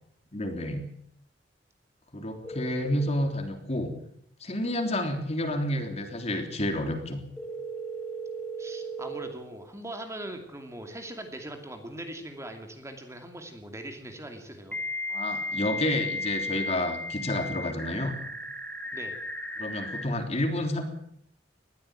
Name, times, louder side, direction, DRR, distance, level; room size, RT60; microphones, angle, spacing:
voice 1, 0.3-0.9 2.1-3.9 4.4-7.2 15.1-18.2 19.6-20.8, left 1 dB, 40° left, 5 dB, 3.5 m, -30 dB
sound 1, 2.4-3.3 7.4-9.3 12.0-12.1 14.7-20.1, left 1 dB, 10° left, 3.1 m, -35 dB
voice 2, 8.6-14.8 18.9-19.2, right 1 dB, 15° right, 5 dB, 2.6 m, -41 dB
20.0 x 14.5 x 9.1 m, 0.71 s
head